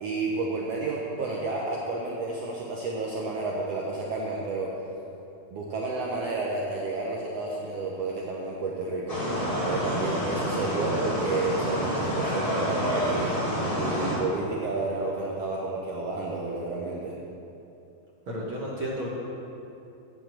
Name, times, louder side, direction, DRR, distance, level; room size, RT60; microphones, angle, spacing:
voice 1, 0.0-4.7 5.5-9.2 9.6-13.3 13.8-17.1, right 3 dB, 85° right, -3 dB, 1.4 m, -31 dB
sound 1, 9.1-14.2, equal, 20° left, 1.0 m, -28 dB
voice 2, 18.3-19.1, equal, 65° right, -4 dB, 1.2 m, -32 dB
8.8 x 7.6 x 7.6 m, 2.8 s
omnidirectional pair, 4.2 m